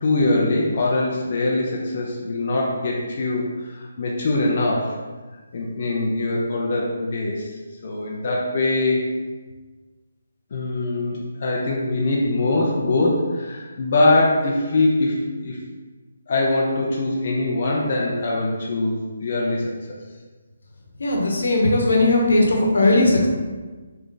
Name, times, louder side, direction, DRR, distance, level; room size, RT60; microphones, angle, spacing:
voice 1, 0.0-5.0 5.5-7.6 7.8-9.0 10.5-15.6 16.3-19.7, left 2 dB, 35° left, -3 dB, 0.4 m, -22 dB
voice 2, 21.0-23.3, left 2 dB, 80° left, -1 dB, 0.9 m, -18 dB
3.2 x 2.4 x 3.8 m, 1.3 s
hypercardioid pair, 175°, 0 cm